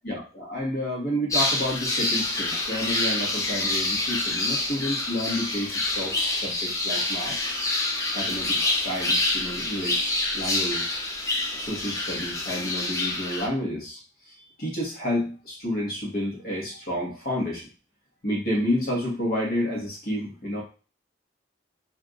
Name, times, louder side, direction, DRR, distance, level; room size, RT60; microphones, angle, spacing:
voice 1, 0.0-7.6 8.1-11.0 11.6-14.0 14.6-17.7 18.2-20.6, equal, 55° left, -3 dB, 1.4 m, -30 dB
sound 1, 1.3-13.5, left 2 dB, 15° left, 0.4 m, -27 dB
3.5 x 2.6 x 2.4 m, 0.35 s
head